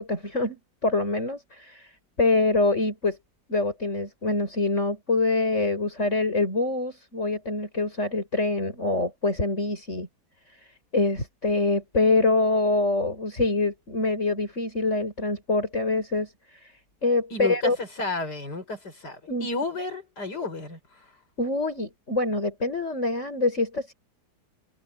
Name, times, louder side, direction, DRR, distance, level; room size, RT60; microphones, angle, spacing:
voice 1, 0.0-3.2 3.5-10.1 10.5-17.8 19.3-19.5 21.4-23.9, left 2 dB, 45° left, 6.5 m, -25 dB
voice 2, 17.3-21.1, left 2 dB, 75° left, 6.9 m, -32 dB
omnidirectional pair, 1.8 m